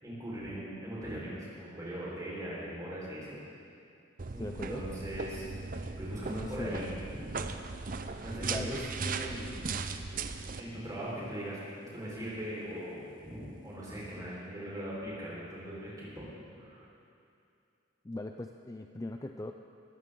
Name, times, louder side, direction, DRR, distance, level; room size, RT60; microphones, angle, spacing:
voice 1, 0.0-3.4 4.3-5.5 6.0-7.5 7.9-9.5 10.0-11.6 11.9-16.3 16.5-16.8, equal, 20° right, -7 dB, 4.6 m, -40 dB
sound 1, 4.2-10.6, right 4 dB, 45° right, 0.6 m, -38 dB
voice 2, 4.4-4.8 6.5-6.8 8.4-8.8 18.0-19.5, left 2 dB, 15° left, 5 dB, 0.4 m, -39 dB
21.0 x 14.5 x 3.8 m, 2.6 s
head